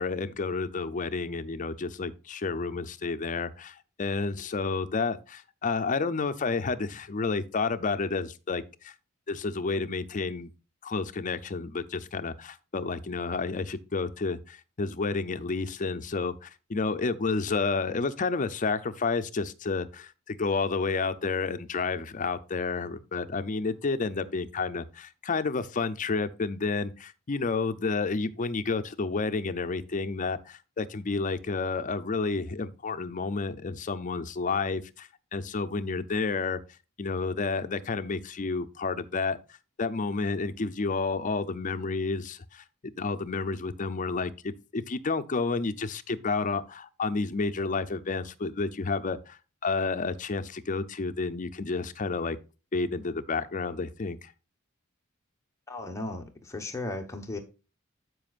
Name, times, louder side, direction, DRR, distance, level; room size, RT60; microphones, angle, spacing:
voice 1, 0.0-8.9 9.3-10.5 10.8-36.6 37.0-39.4 39.8-42.6 43.0-52.4 52.7-54.3, left 4 dB, 35° left, 0.5 m, -30 dB
voice 2, 55.7-57.4, left 2 dB, 15° left, 1.1 m, -36 dB
12.5 x 5.2 x 2.4 m
head